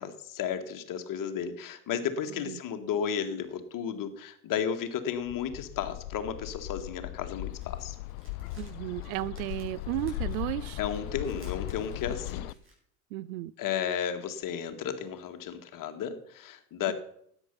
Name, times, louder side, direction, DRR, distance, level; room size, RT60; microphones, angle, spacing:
voice 1, 0.0-8.0 10.8-12.5 13.6-16.9, left 8 dB, 45° left, 2.1 m, -33 dB
voice 2, 2.3-2.6 8.6-10.8 13.1-13.5, right 16 dB, 70° right, 0.6 m, -34 dB
Bird, 5.3-12.5, left 17 dB, 70° left, 0.6 m, -38 dB
sound 1, 7.4-12.7, right 2 dB, 25° right, 7.2 m, -60 dB
13.0 x 9.7 x 5.6 m
hypercardioid pair, 80°, 45 cm